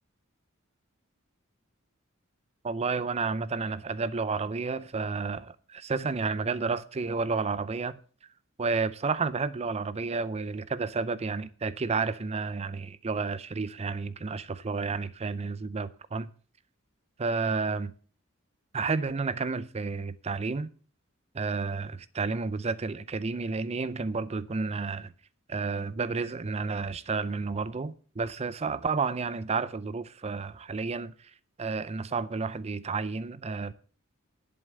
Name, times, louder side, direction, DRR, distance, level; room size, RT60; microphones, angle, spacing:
voice 1, 2.6-8.0 8.6-16.3 17.2-17.9 18.7-20.7 21.3-25.1 25.5-31.3 31.6-33.7, right 4 dB, 30° right, 0.5 m, -31 dB
11.0 x 7.9 x 6.5 m
head